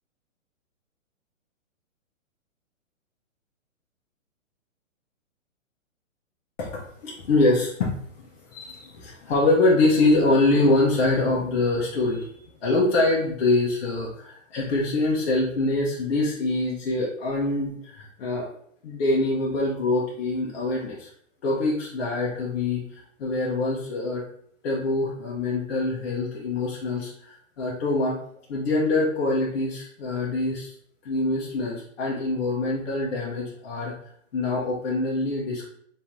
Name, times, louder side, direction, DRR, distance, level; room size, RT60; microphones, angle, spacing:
voice 1, 6.6-18.5 18.8-21.1 21.4-24.2 24.6-28.2 28.5-30.7 31.0-33.9 34.3-35.6, left 2 dB, 50° left, -5 dB, 1.0 m, -24 dB
3.7 x 3.0 x 3.0 m, 0.66 s
hypercardioid pair, 150°, 40 cm